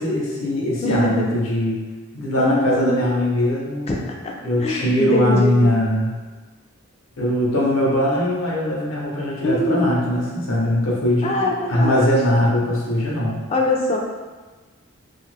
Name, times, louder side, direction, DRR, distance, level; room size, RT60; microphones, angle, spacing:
voice 1, 0.0-1.8 2.1-3.9 4.4-6.2 7.2-11.3 11.7-13.4, equal, 75° left, -4 dB, 0.7 m, -21 dB
voice 2, 0.8-1.3 2.4-3.1 3.9-5.7 9.4-10.0 11.2-12.1 13.5-14.0, left 2 dB, 30° left, 0 dB, 0.3 m, -23 dB
2.6 x 2.4 x 3.1 m, 1.3 s
head